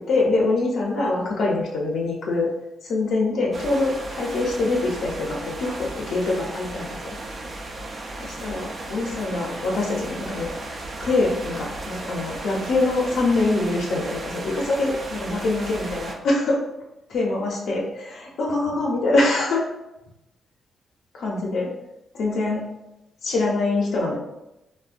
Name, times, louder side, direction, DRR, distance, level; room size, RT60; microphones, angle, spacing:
voice 1, 0.1-2.5 2.8-7.2 8.4-16.6 17.1-19.6 21.1-21.7 22.1-22.6 23.2-24.2, left 2 dB, 65° left, -3 dB, 0.5 m, -24 dB
sound 1, 3.5-16.1, right 2 dB, 35° right, 0.3 m, -35 dB
3.5 x 2.1 x 2.4 m, 0.92 s
wide cardioid pair, 170°, 0 cm